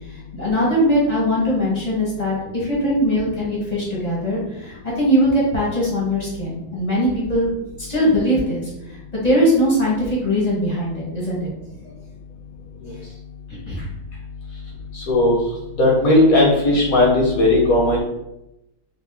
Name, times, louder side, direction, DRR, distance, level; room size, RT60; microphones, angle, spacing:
voice 1, 0.3-7.5 7.8-8.7 9.1-11.5 13.6-13.8, equal, 35° left, -6 dB, 0.6 m, -20 dB
voice 2, 14.9-15.3 15.8-18.0, left 1 dB, 60° left, -3 dB, 0.9 m, -16 dB
5.0 x 2.2 x 3.3 m, 0.89 s
omnidirectional pair, 2.4 m